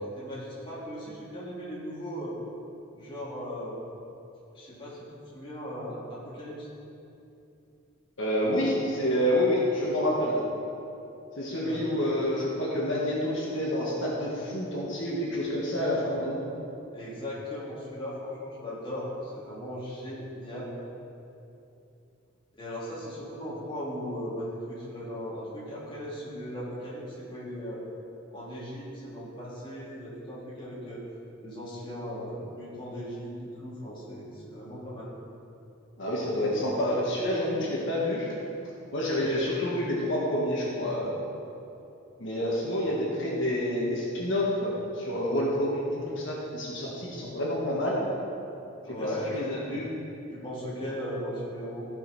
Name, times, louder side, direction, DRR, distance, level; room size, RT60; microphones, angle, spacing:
voice 1, 0.0-2.4 2.9-3.8 4.5-5.1 5.3-6.7 11.6-11.9 16.9-20.7 22.6-27.8 28.3-31.0 31.4-35.1 48.9-49.5 50.3-51.9, equal, 25° left, -8 dB, 2.5 m, -37 dB
voice 2, 8.2-10.4 11.4-16.4 36.0-38.3 38.9-41.2 42.2-48.0 49.0-49.9, left 1 dB, 65° left, -5 dB, 1.6 m, -28 dB
14.5 x 5.6 x 4.2 m, 2.8 s
head